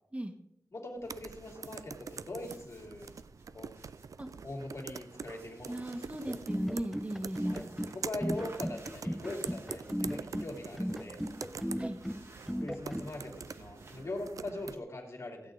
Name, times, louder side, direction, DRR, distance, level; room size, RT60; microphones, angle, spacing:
voice 1, 0.7-3.1 3.5-3.7 4.4-5.8 7.5-7.6 7.9-11.2 12.6-15.5, left 2 dB, 60° left, 1 dB, 2.9 m, -41 dB
sound 1, 0.9-14.5, right 2 dB, 55° right, 1.7 m, -58 dB
sound 2, 1.0-14.8, right 6 dB, 80° right, 0.4 m, -45 dB
voice 2, 5.7-7.6 11.8-12.0, right 1 dB, 20° right, 6 dB, 1.4 m, -38 dB
sound 3, 6.3-13.1, equal, ahead, 0.5 m, -36 dB
16.0 x 8.6 x 3.9 m, 0.80 s
wide cardioid pair, 105°, 6 cm